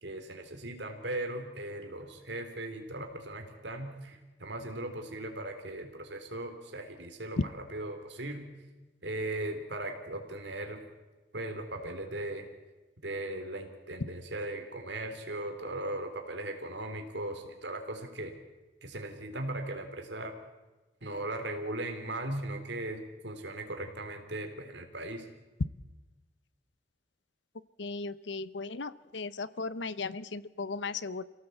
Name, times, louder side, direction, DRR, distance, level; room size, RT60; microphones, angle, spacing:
voice 1, 0.0-8.5 9.0-10.8 11.3-12.5 13.0-18.4 18.8-20.4 21.0-25.3, right 1 dB, 70° right, 5 dB, 3.6 m, -38 dB
voice 2, 27.8-31.2, left 4 dB, 75° left, 17 dB, 0.8 m, -37 dB
27.5 x 17.0 x 8.0 m, 1.2 s
head